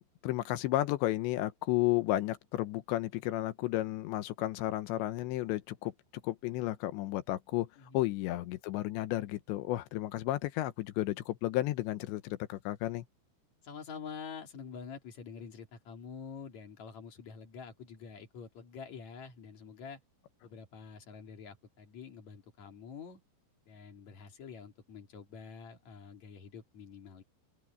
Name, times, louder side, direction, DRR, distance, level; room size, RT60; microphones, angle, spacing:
voice 1, 0.2-5.9 6.2-7.7 7.9-13.0, left 15 dB, 80° left, 3.1 m, -32 dB
voice 2, 7.8-8.1 13.6-20.0 20.4-23.2 23.7-27.2, left 6 dB, 40° left, 3.8 m, -47 dB
open air
omnidirectional pair, 5.3 m